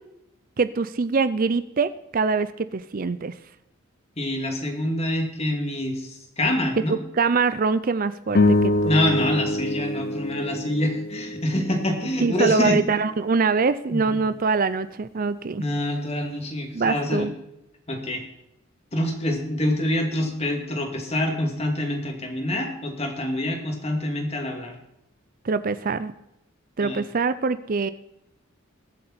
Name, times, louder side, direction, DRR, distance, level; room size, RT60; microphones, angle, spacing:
voice 1, 0.6-3.3 6.9-8.9 12.2-15.6 16.7-17.3 25.4-26.1 26.8-27.9, right 4 dB, 45° right, 14 dB, 0.5 m, -24 dB
voice 2, 4.2-7.0 8.9-12.8 13.9-14.2 15.6-17.3 17.9-18.2 18.9-24.7 26.8-27.0, left 1 dB, 30° left, 3 dB, 2.5 m, -26 dB
sound 1, 8.3-12.8, left 2 dB, 50° left, 0.7 m, -25 dB
21.5 x 7.7 x 4.3 m, 0.84 s
head